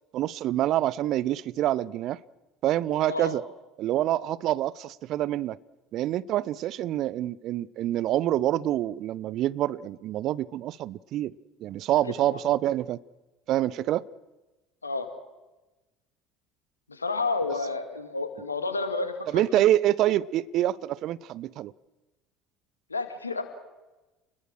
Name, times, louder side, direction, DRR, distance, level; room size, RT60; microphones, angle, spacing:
voice 1, 0.1-2.2 2.6-3.4 3.8-5.6 5.9-11.3 11.6-13.0 13.5-14.1 19.3-21.7, right 13 dB, 50° right, 0.7 m, -26 dB
voice 2, 16.9-19.6 22.9-23.4, left 3 dB, 85° left, 2.3 m, -30 dB
30.0 x 21.0 x 6.4 m
figure-of-eight pair, 60°, 0 cm